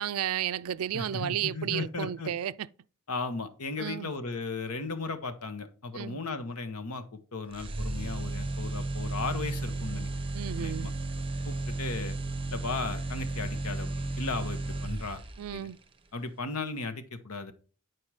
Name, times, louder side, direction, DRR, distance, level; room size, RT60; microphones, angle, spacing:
voice 1, 0.0-2.7 3.8-4.1 5.9-6.2 10.3-10.9 15.4-15.8, right 10 dB, 70° right, 0.4 m, -33 dB
voice 2, 0.9-2.3 3.1-10.1 10.6-10.9 11.4-12.2 12.5-13.9 14.2-15.2 15.5-15.7 16.1-17.5, left 3 dB, 75° left, 1.1 m, -36 dB
sound 1, 7.5-15.5, right 2 dB, 25° right, 0.7 m, -34 dB
10.5 x 4.6 x 4.8 m
head